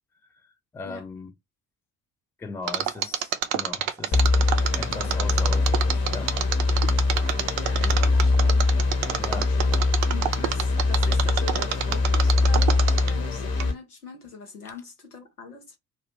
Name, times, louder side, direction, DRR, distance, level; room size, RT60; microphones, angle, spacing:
voice 1, 0.7-1.3 2.4-6.3 7.8-8.2 9.2-9.5, left 4 dB, 5° left, 0.3 m, -38 dB
Mechanisms, 2.7-13.3 13.6-13.7, right 10 dB, 60° right, 0.5 m, -27 dB
sound 1, 4.1-13.7, left 3 dB, 35° left, 0.8 m, -22 dB
voice 2, 7.6-8.7 9.3-9.8 10.1-15.8, left 4 dB, 90° left, 0.6 m, -42 dB
2.4 x 2.1 x 2.8 m
figure-of-eight pair, 45°, 44 cm